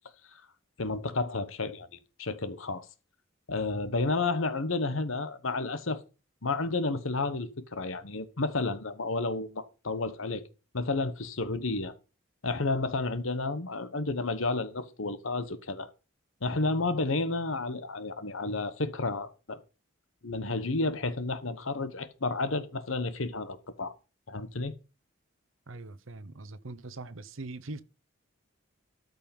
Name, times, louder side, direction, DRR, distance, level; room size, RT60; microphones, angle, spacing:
voice 1, 0.8-1.9 2.2-2.9 3.5-6.0 6.4-10.4 10.7-11.9 12.4-15.9 16.4-19.6 20.2-23.9 24.3-24.7, left 3 dB, 75° left, 1.2 m, -31 dB
voice 2, 25.7-27.8, right 2 dB, 75° right, 0.8 m, -42 dB
13.0 x 5.4 x 5.4 m
head